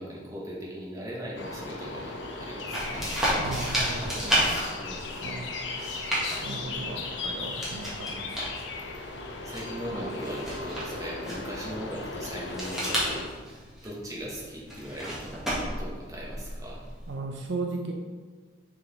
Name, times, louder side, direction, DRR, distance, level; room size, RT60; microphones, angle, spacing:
voice 1, 0.0-3.1 4.8-5.1 9.4-13.3 13.8-16.8, equal, 20° right, -4 dB, 1.3 m, -39 dB
sound 1, 1.4-13.2, left 3 dB, 70° left, 0.7 m, -37 dB
sound 2, 2.7-17.1, equal, ahead, 1.6 m, -33 dB
voice 2, 3.4-4.4 5.2-5.5 6.4-8.5 9.9-10.1 17.1-17.9, right 3 dB, 70° right, 2 dB, 0.6 m, -36 dB
6.5 x 4.0 x 4.1 m, 1.5 s
head